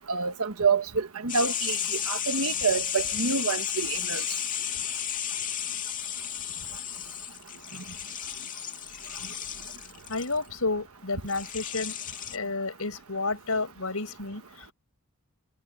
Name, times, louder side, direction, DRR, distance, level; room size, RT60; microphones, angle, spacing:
voice 1, 0.1-1.8 2.1-4.2, right 5 dB, 75° right, 1.4 m, -27 dB
sound 1, 1.3-10.4 11.3-12.4, left 9 dB, 35° left, 2.6 m, -33 dB
voice 2, 10.1-12.0 12.3-14.7, left 3 dB, 75° left, 5.3 m, -31 dB
head